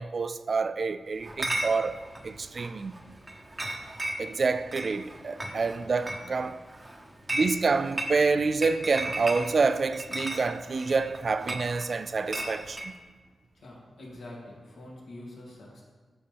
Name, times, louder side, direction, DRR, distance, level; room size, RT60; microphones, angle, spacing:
voice 1, 0.0-2.0 2.2-2.9 4.2-6.6 7.3-12.9, right 4 dB, 55° right, 0.3 m, -27 dB
Chatter / Chink clink, 1.2-12.9, right 1 dB, 25° right, 0.9 m, -36 dB
voice 2, 13.5-15.8, left 1 dB, 80° left, 2.5 m, -45 dB
12.0 x 4.3 x 3.5 m
cardioid pair, 75°, 0 cm